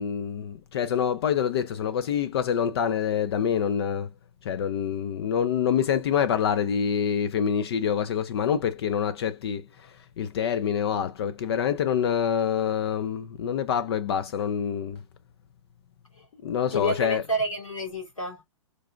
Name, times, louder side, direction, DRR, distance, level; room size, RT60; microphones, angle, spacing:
voice 1, 0.0-4.1 4.4-15.0 16.4-17.2, left 8 dB, 50° left, 0.6 m, -26 dB
voice 2, 16.7-18.4, equal, 85° left, 3.1 m, -29 dB
4.8 x 4.6 x 2.3 m
figure-of-eight pair, 115°, 17 cm